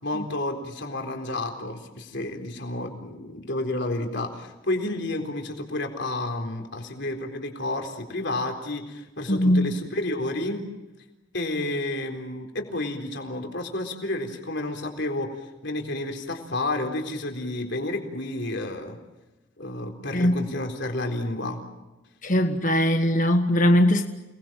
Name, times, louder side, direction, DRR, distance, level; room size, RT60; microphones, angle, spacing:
voice 1, 0.0-10.6 11.3-19.0 19.6-21.6, left 2 dB, 60° left, 3 dB, 4.1 m, -31 dB
voice 2, 9.3-9.7 20.1-20.3 22.2-24.0, left 1 dB, 40° left, 6 dB, 1.4 m, -20 dB
29.5 x 20.0 x 7.6 m, 1.1 s
head